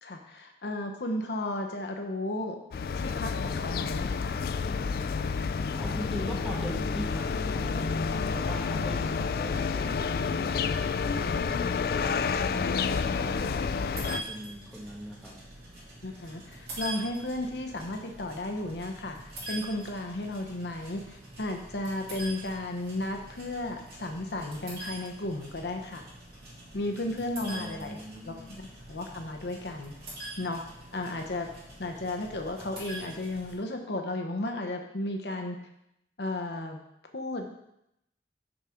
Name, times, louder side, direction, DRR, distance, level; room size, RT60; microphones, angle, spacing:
voice 1, 0.0-2.6 2.9-4.4 11.7-11.9 16.0-19.2 19.5-26.0 26.7-28.0 28.3-29.9 30.4-30.6 30.9-31.5 31.8-35.6 36.2-36.8 37.1-37.5, left 1 dB, 70° left, 4 dB, 0.9 m, -34 dB
sound 1, 2.7-14.2, left 5 dB, 55° left, 0.3 m, -29 dB
voice 2, 5.7-11.7 12.0-15.4 27.4-28.5, equal, ahead, -3 dB, 1.3 m, -41 dB
sound 2, 13.9-33.5, right 1 dB, 60° right, 3.4 m, -44 dB
6.7 x 5.0 x 5.8 m, 0.81 s
head